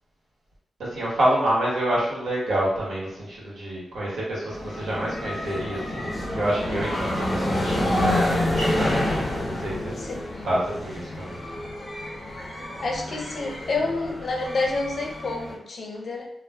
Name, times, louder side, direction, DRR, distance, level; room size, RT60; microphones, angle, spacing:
voice 1, 0.8-8.9 9.5-9.9 10.4-11.4 11.9-12.1, right 1 dB, 75° right, -6 dB, 1.2 m, -27 dB
sound 1, 4.5-15.5, left 1 dB, 20° left, 1.0 m, -28 dB
voice 2, 12.8-16.3, left 3 dB, 60° left, 0 dB, 0.5 m, -28 dB
2.4 x 2.1 x 3.3 m, 0.80 s
cardioid pair, 95°, 0 cm